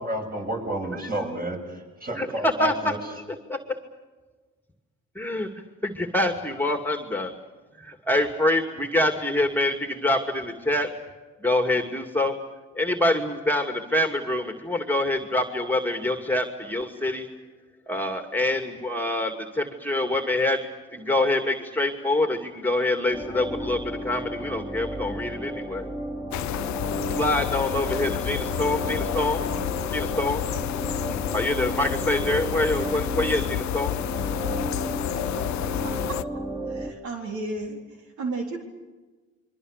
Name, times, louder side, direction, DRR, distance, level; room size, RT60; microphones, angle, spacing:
voice 1, 0.0-3.0, right 1 dB, 30° right, 2 dB, 7.8 m, -31 dB
voice 2, 2.2-2.7 3.5-3.6 5.2-5.5 5.8-7.3 7.8-10.9 11.4-12.4 12.7-17.3 17.9-25.8 27.2-29.4 29.9-30.4 31.3-33.9, left 1 dB, 5° left, 6 dB, 2.4 m, -25 dB
sound 1, 23.1-36.9, right 1 dB, 15° right, 3.4 m, -33 dB
sound 2, 26.3-36.2, left 15 dB, 70° left, 0.7 m, -30 dB
voice 3, 35.4-36.2 36.7-38.6, right 3 dB, 70° right, 2 dB, 3.9 m, -34 dB
28.0 x 23.0 x 6.6 m, 1.3 s
supercardioid pair, 70°, 30 cm